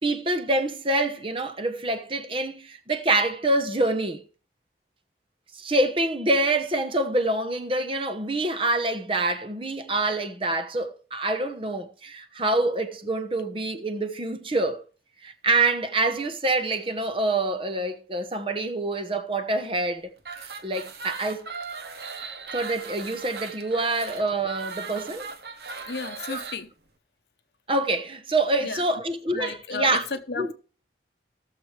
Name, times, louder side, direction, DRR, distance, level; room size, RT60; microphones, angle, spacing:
voice 1, 0.0-4.2 5.5-14.8 15.2-20.0 20.4-21.4 22.5-25.3 26.3-26.4 27.7-30.0 30.4-30.5, right 2 dB, 30° right, 1.0 m, -26 dB
sound 1, 20.2-26.6, right 5 dB, 65° right, 1.0 m, -38 dB
voice 2, 25.8-26.7 28.6-28.8 29.3-30.5, left 4 dB, 70° left, 0.9 m, -34 dB
18.0 x 6.7 x 3.3 m
head